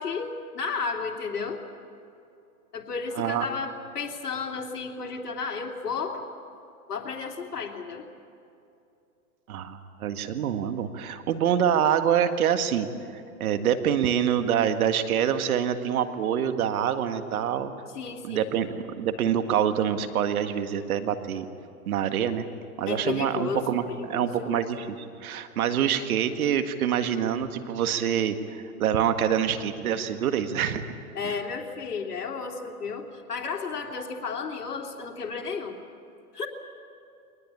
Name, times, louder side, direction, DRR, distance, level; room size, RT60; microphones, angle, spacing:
voice 1, 0.0-1.6 2.7-6.2 6.9-8.0 17.9-18.5 22.9-23.6 23.9-24.6 31.1-35.8 36.3-36.5, left 5 dB, 85° left, 2 dB, 3.2 m, -33 dB
voice 2, 3.2-3.5 9.5-12.9 13.4-17.7 18.2-21.5 21.9-22.4 22.8-30.9, right 9 dB, 65° right, 8 dB, 1.9 m, -26 dB
23.5 x 19.5 x 8.8 m, 2.7 s
hypercardioid pair, 120°, 46 cm